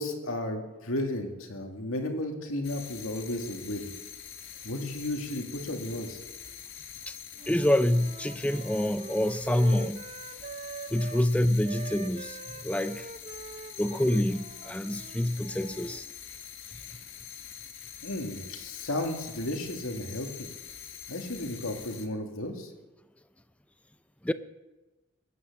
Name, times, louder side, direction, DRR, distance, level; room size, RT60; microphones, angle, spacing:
voice 1, 0.0-3.9 4.6-6.2 18.0-20.5 21.1-22.7, left 1 dB, 85° left, 2.3 m, -34 dB
sound 1, 2.6-22.1, left 9 dB, 65° left, 1.7 m, -45 dB
Wind instrument woodwind instrument, 7.4-11.3 11.6-16.0, right 3 dB, 35° right, 0.7 m, -44 dB
voice 2, 7.5-10.0 10.9-13.1 13.8-16.1 24.2-24.3, left 1 dB, 5° left, 0.4 m, -27 dB
19.0 x 9.6 x 7.3 m
head